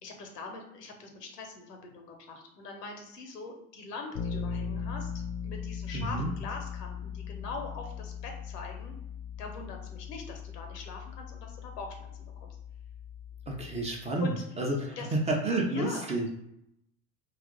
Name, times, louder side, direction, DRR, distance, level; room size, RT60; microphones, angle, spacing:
voice 1, 0.0-5.1 5.4-8.9 9.4-12.6 14.2-14.6 15.0-15.1 15.7-16.0, left 3 dB, 80° left, 3 dB, 0.9 m, -42 dB
Bass guitar, 4.1-14.0, left 6 dB, 45° left, 0.6 m, -39 dB
voice 2, 5.9-6.3 13.5-16.3, right 2 dB, 15° right, -1 dB, 0.6 m, -30 dB
2.8 x 2.4 x 3.7 m, 0.79 s
figure-of-eight pair, 75°, 47 cm